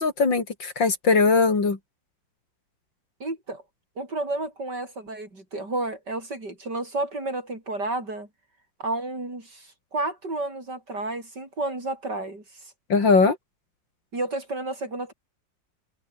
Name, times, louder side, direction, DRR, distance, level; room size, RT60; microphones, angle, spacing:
voice 1, 0.0-1.8 12.9-13.4, left 4 dB, 85° left, 4.3 m, -20 dB
voice 2, 3.2-3.6 4.0-8.3 8.8-12.4 14.1-15.1, right 2 dB, 65° right, 7.4 m, -31 dB
omnidirectional pair, 2.0 m